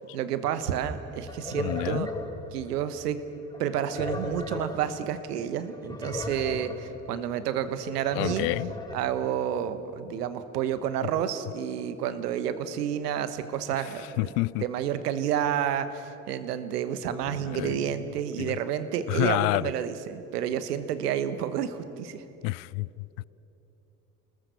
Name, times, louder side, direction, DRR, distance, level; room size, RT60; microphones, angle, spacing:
voice 1, 0.1-2.1 2.5-3.2 3.6-8.5 8.9-14.3 14.6-22.2, right 9 dB, 85° right, 1.2 m, -30 dB
sound 1, 1.1-3.0 3.5-5.0 5.3-5.4 5.6-6.9 7.4-9.0, left 2 dB, 10° left, 5.1 m, -36 dB
voice 2, 1.6-2.1 8.2-8.7 14.2-14.6 17.5-17.8 18.4-18.5 19.1-19.6 22.4-22.9, left 24 dB, 70° left, 0.5 m, -28 dB
29.0 x 20.5 x 6.9 m
hypercardioid pair, 50°, 46 cm